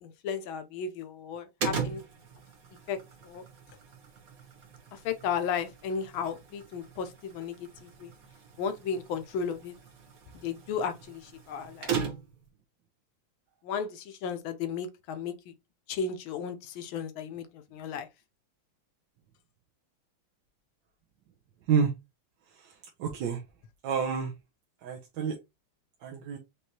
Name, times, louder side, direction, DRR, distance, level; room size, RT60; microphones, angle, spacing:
voice 1, 0.0-2.0 2.9-3.0 3.2-3.4 4.9-8.1 8.6-9.7 10.3-11.9 13.6-15.5 15.9-18.1, left 6 dB, 75° left, 1.4 m, -34 dB
sound 1, 1.6-12.5, right 6 dB, 50° right, 1.3 m, -39 dB
voice 2, 23.0-23.4 23.8-24.3 24.8-25.4 26.0-26.4, right 6 dB, 65° right, 1.4 m, -28 dB
5.3 x 3.2 x 2.8 m
omnidirectional pair, 2.4 m